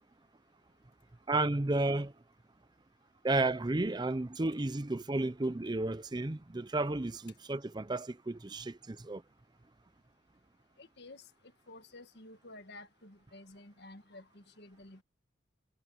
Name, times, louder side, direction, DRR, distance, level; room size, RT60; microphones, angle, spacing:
voice 1, 1.3-2.1 3.2-9.2, right 2 dB, 20° right, 0.6 m, -32 dB
voice 2, 10.8-15.0, left 2 dB, 55° left, 1.7 m, -52 dB
head